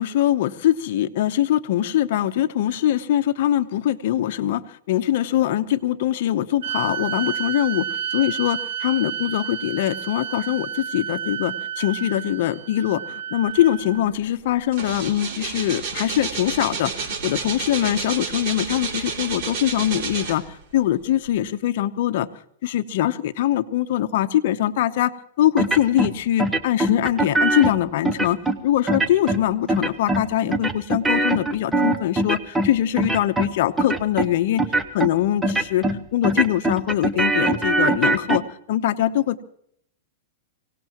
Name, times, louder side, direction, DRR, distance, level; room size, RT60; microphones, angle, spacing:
voice 1, 0.0-22.3 22.6-34.6 34.9-35.9 36.1-38.4 38.7-39.4, left 12 dB, 60° left, 9 dB, 0.9 m, -22 dB
sound 1, 6.6-14.1, right 9 dB, 70° right, 1.8 m, -31 dB
sound 2, 13.9-14.1 14.4-20.7 21.3-21.4, right 5 dB, 50° right, 3.0 m, -30 dB
sound 3, 25.6-26.1 26.4-27.7 28.1-28.6 28.9-29.4 29.7-30.2 30.5-32.7 33.0-33.5 33.8-34.3 34.6-35.1 35.4-36.0 36.2-38.4, right 2 dB, 10° right, 0.8 m, -22 dB
24.0 x 17.5 x 3.0 m, 0.69 s
hypercardioid pair, 150°, 0 cm